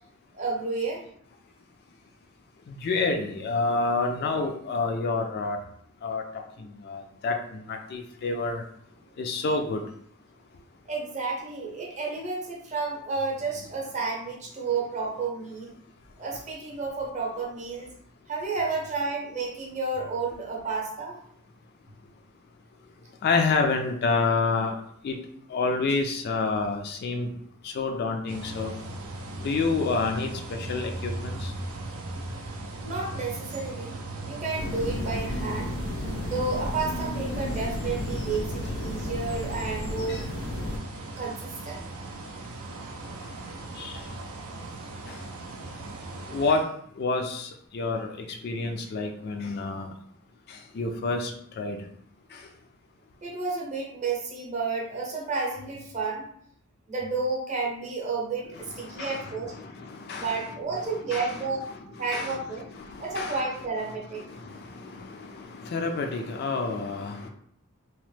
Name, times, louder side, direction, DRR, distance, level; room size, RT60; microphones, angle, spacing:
voice 1, 0.3-1.0 10.9-15.7 16.2-17.9 18.3-21.2 32.8-35.7 36.2-40.3 41.2-41.8 53.2-56.3 56.9-59.5 60.2-61.7 62.0-62.6 63.0-64.3 64.7-65.1, right 4 dB, 35° right, -1 dB, 0.7 m, -31 dB
voice 2, 2.7-5.6 6.0-6.2 6.6-8.6 9.2-9.8 23.2-24.7 25.0-25.2 25.5-27.3 27.6-28.7 29.4-31.3 40.1-40.2 43.8-43.9 46.3-46.6 47.0-48.1 48.4-49.9 50.7-51.3 51.6-51.8 58.6-60.5 61.0-61.5 62.1-62.4 62.8-63.4 64.1-64.5 65.0-67.3, left 3 dB, 50° left, 4 dB, 0.3 m, -28 dB
sound 1, 28.3-46.5, right 2 dB, 75° right, 0.5 m, -38 dB
sound 2, 34.5-40.8, left 1 dB, 80° left, 0.7 m, -33 dB
2.9 x 2.1 x 3.1 m, 0.64 s
head